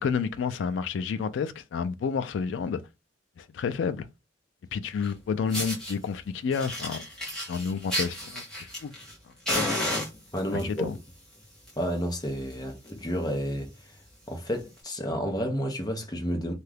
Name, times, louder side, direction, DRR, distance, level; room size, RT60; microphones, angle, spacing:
voice 1, 0.0-2.8 3.4-4.1 4.7-7.0 7.5-8.4 8.8-8.9 10.5-10.9, left 6 dB, 85° left, 0.3 m, -30 dB
Fire, 5.0-5.1 5.5-5.9 6.5-9.1 9.5-10.6 11.4-11.7 12.0-12.1 12.5-12.6 12.8-13.1 13.6-13.7 14.7-14.8, left 1 dB, 5° left, 1.1 m, -31 dB
voice 2, 10.3-10.9 11.8-14.0 14.3-16.5, equal, 20° left, 0.7 m, -31 dB
2.7 x 2.3 x 3.3 m
head